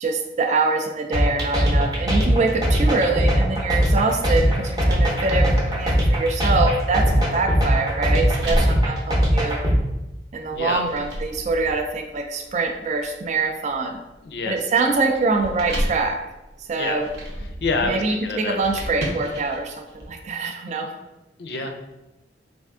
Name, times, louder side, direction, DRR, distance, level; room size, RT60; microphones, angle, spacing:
voice 1, 0.0-9.6 10.3-14.0 14.5-16.2 16.6-17.1 17.8-20.9, right 3 dB, 40° right, 4 dB, 0.3 m, -24 dB
sound 1, 1.1-9.8, equal, 20° right, 0.7 m, -19 dB
sound 2, 4.1-9.9 10.5-20.1, equal, 70° right, 0.7 m, -34 dB
voice 2, 10.5-10.8 14.2-14.6 16.8-17.0 17.6-18.6 21.4-21.7, left 3 dB, 65° left, 5 dB, 0.4 m, -27 dB
3.4 x 2.5 x 3.5 m, 0.99 s
head